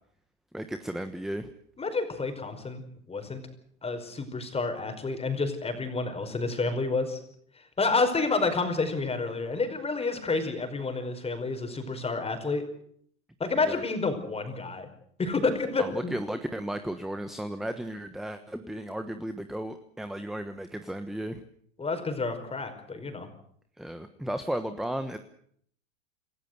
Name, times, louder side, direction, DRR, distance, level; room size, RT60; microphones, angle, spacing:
voice 1, 0.5-1.5 13.6-13.8 15.8-21.4 23.8-25.2, right 1 dB, ahead, 9 dB, 1.2 m, -34 dB
voice 2, 1.8-2.8 3.1-3.4 3.8-7.2 7.8-12.6 13.4-14.9 15.2-16.1 21.8-23.3, left 3 dB, 15° left, 6 dB, 5.1 m, -29 dB
27.5 x 14.5 x 8.1 m, 0.65 s
supercardioid pair, 125°, 39 cm